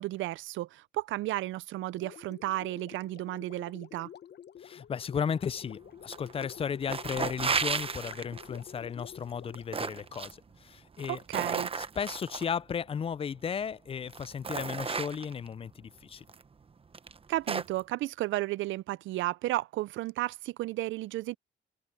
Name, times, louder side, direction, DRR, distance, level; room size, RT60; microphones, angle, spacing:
voice 1, 0.0-4.1 11.1-11.7 17.3-21.4, right 16 dB, 80° right, 0.5 m, -33 dB
Gurgling, 1.9-10.3, left 9 dB, 60° left, 1.0 m, -50 dB
voice 2, 4.6-11.2 12.0-16.2, left 7 dB, 30° left, 0.3 m, -35 dB
sound 1, 6.1-6.5 6.8-8.6 9.3-10.3 10.9-12.5 13.5-13.6 14.1-15.5 16.3-16.4 16.9-17.8, right 5 dB, 30° right, 0.9 m, -33 dB
cardioid pair, 90°, 20 cm